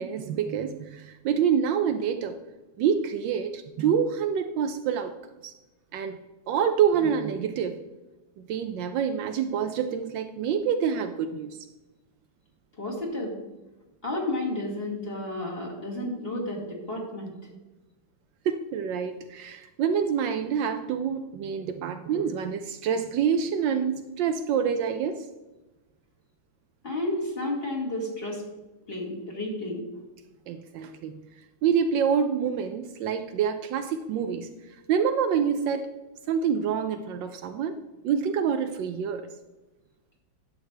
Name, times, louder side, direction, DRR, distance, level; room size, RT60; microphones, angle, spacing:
voice 1, 0.0-2.4 2.8-5.1 5.4-5.5 5.9-6.2 6.5-7.8 8.4-11.6 18.4-25.3 30.5-31.2 31.6-35.9 36.3-37.8 38.0-39.3, right 7 dB, 75° right, 9 dB, 1.2 m, -27 dB
voice 2, 12.8-13.4 14.0-17.3 26.8-28.4 28.9-29.8, left 1 dB, 30° left, -3 dB, 2.0 m, -31 dB
11.0 x 7.3 x 3.3 m, 1.1 s
omnidirectional pair, 2.1 m